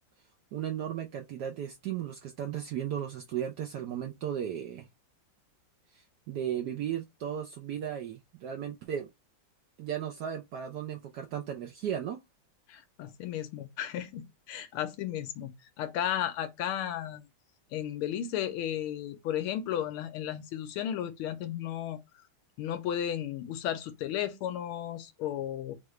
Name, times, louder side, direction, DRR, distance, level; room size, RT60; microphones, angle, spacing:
voice 1, 0.5-4.9 5.9-9.1 9.8-12.2, right 9 dB, 75° right, 0.9 m, -35 dB
voice 2, 12.7-17.2 17.7-22.0 22.6-25.7, left 10 dB, 85° left, 1.6 m, -34 dB
4.7 x 2.4 x 3.1 m
omnidirectional pair, 2.4 m